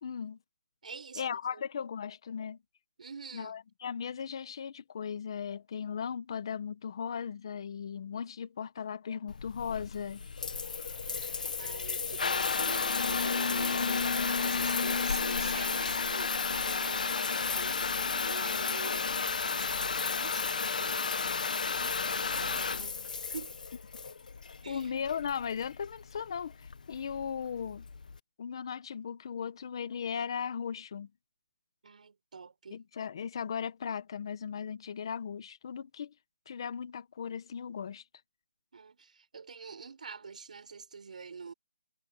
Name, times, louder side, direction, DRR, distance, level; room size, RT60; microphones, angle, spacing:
voice 1, 0.0-0.4 1.2-2.6 3.3-10.2 24.7-27.8 28.4-31.1 32.7-36.1 36.5-38.0, left 7 dB, 30° left, 1.2 m, -37 dB
voice 2, 0.8-1.2 1.5-1.6 3.0-3.6 11.6-14.1 14.4-21.0 21.7-23.0 23.3-23.5 24.6-24.9 31.8-32.8 38.7-41.5, right 5 dB, 50° right, 7.1 m, -46 dB
Water tap faucet / Bathtub (filling or washing) / Trickle dribble, 9.3-28.2, left 5 dB, 55° left, 1.1 m, -32 dB
hypercardioid pair, 175°, 5 cm